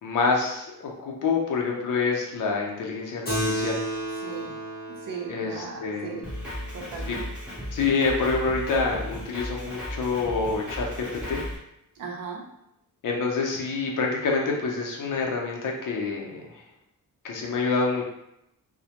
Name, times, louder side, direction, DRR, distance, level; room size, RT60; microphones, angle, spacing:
voice 1, 0.0-3.8 5.3-5.5 5.8-6.1 7.1-7.2 7.7-11.4 13.0-16.5 17.2-18.0, left 4 dB, 60° left, -1 dB, 0.6 m, -27 dB
Keyboard (musical), 3.3-8.1, equal, 25° left, 0.7 m, -33 dB
voice 2, 4.1-4.6 4.9-6.3 6.7-7.3 11.9-12.5, right 5 dB, 65° right, 0 dB, 0.6 m, -37 dB
Drum kit, 6.2-11.6, equal, 5° right, 0.9 m, -35 dB
2.1 x 2.1 x 2.8 m, 0.81 s
wide cardioid pair, 140°, 36 cm